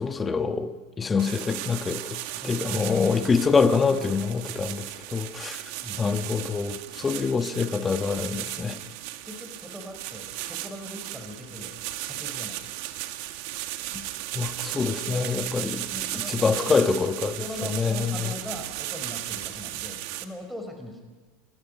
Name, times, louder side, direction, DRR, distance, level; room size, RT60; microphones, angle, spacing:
voice 1, 0.0-5.6 6.0-8.8 13.9-14.0 14.3-18.3, left 5 dB, 20° left, 1.4 m, -26 dB
sound 1, 1.2-20.2, right 15 dB, 65° right, 1.7 m, -35 dB
voice 2, 2.4-3.3 5.8-6.1 8.5-12.8 15.9-17.1 17.4-21.1, left 1 dB, ahead, 4.7 m, -40 dB
29.0 x 24.0 x 5.4 m
hypercardioid pair, 105°, 0 cm